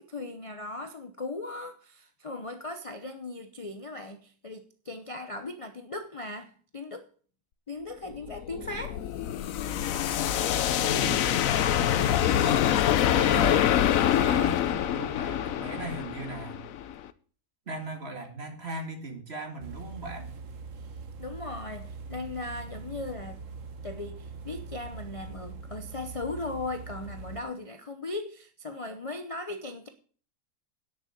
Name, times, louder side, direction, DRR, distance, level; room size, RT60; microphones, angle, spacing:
voice 1, 0.0-7.1 7.7-9.0 20.8-20.9 21.2-23.4 23.8-29.9, left 2 dB, 30° left, 0.7 m, -38 dB
sound 1, 8.1-17.1, left 10 dB, 70° left, 1.1 m, -25 dB
voice 2, 10.8-12.7 13.0-13.7 14.2-16.6 17.7-20.3, right 2 dB, 45° right, 2.2 m, -38 dB
sound 2, 19.6-27.4, right 4 dB, 60° right, 1.4 m, -42 dB
10.5 x 6.5 x 8.0 m
omnidirectional pair, 1.6 m